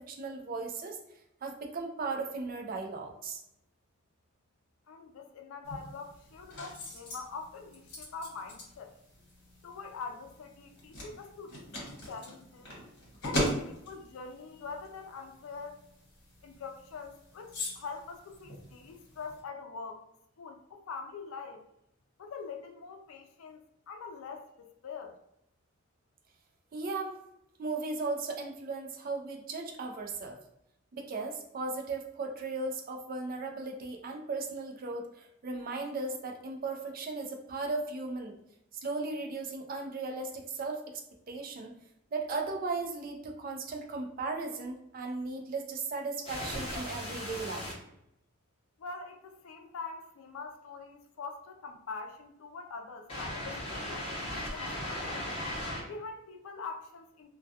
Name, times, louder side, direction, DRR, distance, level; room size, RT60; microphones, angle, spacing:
voice 1, 0.1-1.0 1.4-3.4 26.7-27.2 27.6-30.4 30.9-38.3 38.8-41.0 41.3-41.7 42.1-47.7, right 3 dB, 45° right, 3 dB, 0.4 m, -36 dB
voice 2, 4.9-9.0 9.6-12.7 13.2-15.9 16.4-20.0 20.4-21.7 22.2-23.6 23.9-25.2 48.8-55.3 55.8-57.3, left 4 dB, 90° left, 5 dB, 0.4 m, -44 dB
sound 1, 5.6-19.4, equal, 55° left, 1.1 m, -41 dB
sound 2, 46.3-47.7 53.1-55.8, left 1 dB, 30° left, 0.8 m, -37 dB
2.2 x 2.2 x 2.7 m, 0.80 s
head